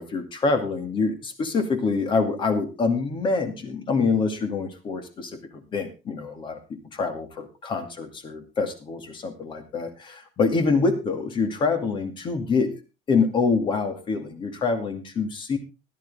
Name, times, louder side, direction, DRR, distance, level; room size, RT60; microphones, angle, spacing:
voice 1, 0.0-6.6 6.9-12.7 13.1-15.6, left 4 dB, 35° left, 7 dB, 2.5 m, -25 dB
16.0 x 11.5 x 3.6 m, 0.29 s
cardioid pair, 155°, 15 cm